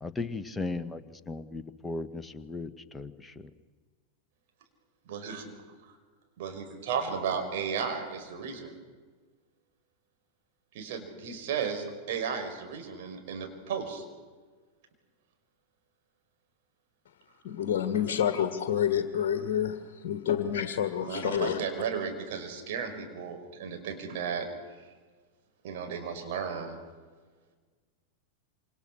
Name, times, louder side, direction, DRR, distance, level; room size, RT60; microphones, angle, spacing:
voice 1, 0.0-3.5, left 3 dB, 10° left, 10 dB, 1.4 m, -37 dB
voice 2, 5.1-5.4 6.4-8.8 10.7-14.0 21.0-24.5 25.6-26.8, right 6 dB, 50° right, 4 dB, 5.5 m, -34 dB
voice 3, 17.4-19.8 20.0-21.6, left 9 dB, 50° left, 9 dB, 1.8 m, -28 dB
27.5 x 27.0 x 6.4 m, 1.4 s
figure-of-eight pair, 90°, 0 cm